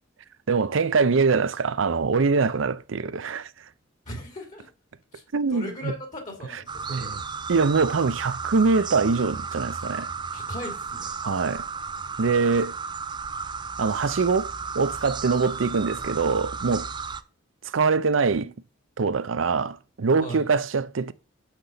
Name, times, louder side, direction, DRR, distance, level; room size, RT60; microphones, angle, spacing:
voice 1, 0.5-3.5 5.3-5.9 6.9-7.2 7.5-10.1 11.2-11.7 12.2-12.8 13.8-16.9 17.7-18.5 19.0-21.1, right 4 dB, 75° right, 0.6 m, -23 dB
voice 2, 4.1-4.7 5.1-5.2 5.5-7.1 10.3-11.1 20.2-20.5, equal, 40° left, 2.4 m, -38 dB
sound 1, 6.7-17.2, right 5 dB, 25° right, 0.4 m, -34 dB
6.6 x 5.9 x 6.9 m
head